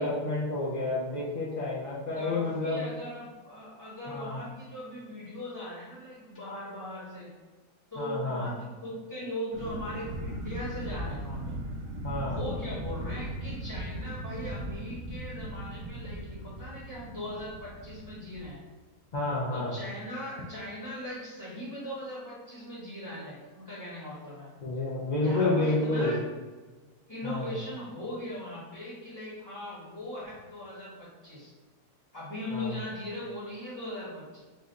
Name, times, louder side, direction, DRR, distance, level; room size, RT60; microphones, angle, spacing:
voice 1, 0.0-2.9 4.1-4.4 8.0-8.5 12.0-12.4 19.1-19.7 24.6-26.1 27.2-27.5 32.5-32.8, left 2 dB, 85° left, -7 dB, 0.4 m, -29 dB
voice 2, 2.1-7.3 7.9-11.6 12.3-18.6 19.5-24.5 25.2-26.2 27.1-31.5 32.1-34.4, left 1 dB, 15° left, -8 dB, 0.9 m, -39 dB
sound 1, 9.5-18.5, right 1 dB, 55° right, 0.9 m, -38 dB
4.0 x 2.4 x 3.9 m, 1.3 s
omnidirectional pair, 1.8 m